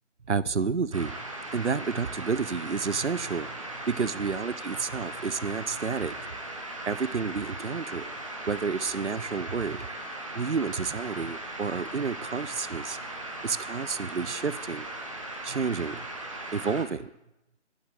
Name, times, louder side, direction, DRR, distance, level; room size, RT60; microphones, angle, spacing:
voice 1, 0.3-6.3 6.9-8.0 8.5-9.9 10.3-13.0 13.4-14.9 15.4-16.1 16.5-17.1, right 5 dB, 70° right, 17 dB, 0.7 m, -30 dB
sound 1, 0.9-16.8, right 1 dB, 25° right, 1.4 m, -38 dB
12.0 x 7.5 x 8.2 m, 0.89 s
figure-of-eight pair, 165°, 36 cm